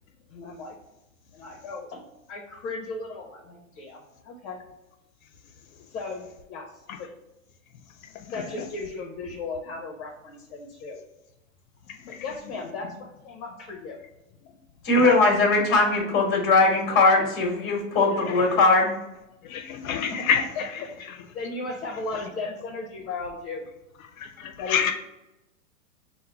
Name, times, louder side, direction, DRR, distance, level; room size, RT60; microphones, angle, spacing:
voice 1, 0.3-0.7 1.3-2.0 2.3-4.6 5.9-6.7 7.0-7.1 8.3-11.0 12.1-14.0 19.8-20.3 20.6-20.9 21.3-23.7 24.6-24.9, left 3 dB, 45° left, 0.9 m, -36 dB
voice 2, 14.8-18.9, left 3 dB, 30° left, 1.4 m, -20 dB
voice 3, 19.4-20.4 24.2-24.9, left 7 dB, 80° left, 0.6 m, -27 dB
5.4 x 2.1 x 3.4 m
hypercardioid pair, 145°, 40 cm